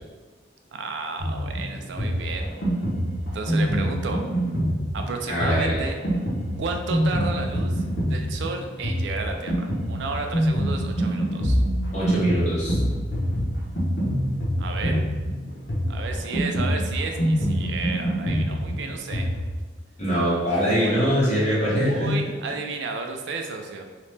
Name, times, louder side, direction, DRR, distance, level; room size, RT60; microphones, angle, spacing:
voice 1, 0.7-2.5 3.3-4.2 4.9-6.0 6.6-7.8 8.1-11.6 14.6-15.0 15.9-19.3 20.8-21.0 21.9-23.8, right 4 dB, 65° right, 4 dB, 0.3 m, -32 dB
Drum kit, 1.2-19.4, equal, 70° left, 0.8 m, -25 dB
voice 2, 5.3-5.7 11.9-12.8 20.0-22.2 22.4-22.5, equal, 35° left, -8 dB, 1.0 m, -23 dB
2.8 x 2.0 x 3.2 m, 1.3 s
head